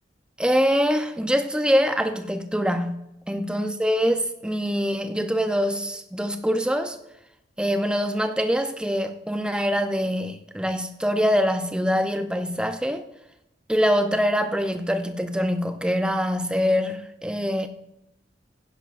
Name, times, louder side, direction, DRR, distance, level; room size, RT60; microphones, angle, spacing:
voice 1, 0.4-7.0 7.6-13.1 13.7-17.7, equal, 5° right, 0.6 m, -24 dB
16.5 x 10.5 x 2.6 m
head